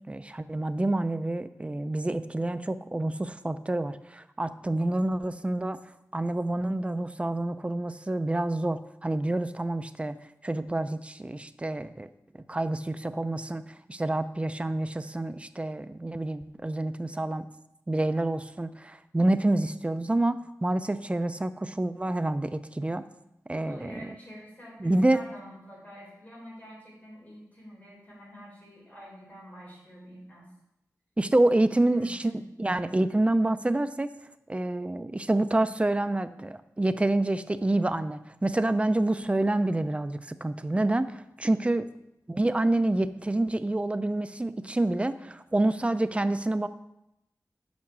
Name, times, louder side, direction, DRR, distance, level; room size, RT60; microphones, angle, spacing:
voice 1, 0.1-5.8 6.1-10.2 10.4-12.1 12.3-17.5 17.9-23.1 23.5-24.1 24.8-25.2 31.2-34.1 34.5-41.9 42.3-46.7, right 2 dB, 20° right, 11 dB, 0.5 m, -27 dB
voice 2, 23.5-30.5 31.9-32.5 41.5-41.9, equal, 25° left, -5 dB, 3.9 m, -47 dB
7.3 x 5.7 x 6.1 m, 0.85 s
wide cardioid pair, 85°, 6 cm